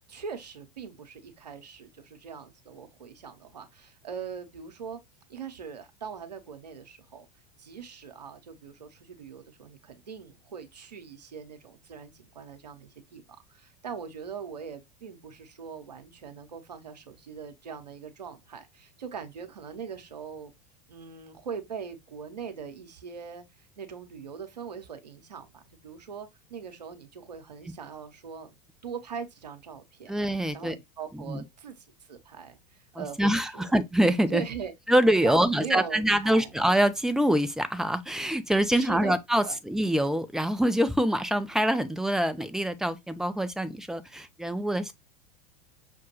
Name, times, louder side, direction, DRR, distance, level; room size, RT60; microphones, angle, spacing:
voice 1, 0.1-5.0 5.3-7.3 7.6-13.2 13.5-20.5 20.9-28.6 28.8-30.1 30.5-33.7 34.3-34.7 35.2-36.6 38.7-39.6, right 6 dB, 80° right, 0.8 m, -41 dB
voice 2, 30.1-30.8 31.1-31.4 33.0-34.4 34.9-44.9, right 1 dB, ahead, 0.5 m, -25 dB
5.9 x 2.2 x 3.0 m
figure-of-eight pair, 80°, 21 cm